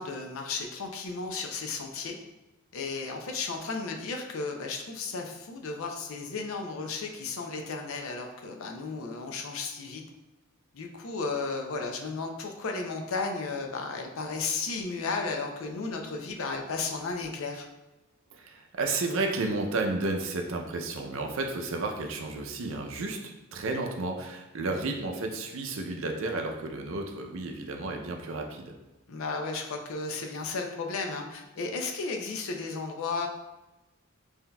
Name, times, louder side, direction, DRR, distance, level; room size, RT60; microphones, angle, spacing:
voice 1, 0.0-2.2 2.7-10.0 10.7-17.7 24.7-24.9 29.1-33.3, left 4 dB, 70° left, 3 dB, 0.5 m, -34 dB
voice 2, 18.3-28.8, right 3 dB, 65° right, 3 dB, 0.5 m, -32 dB
5.7 x 2.7 x 2.2 m, 1.0 s
head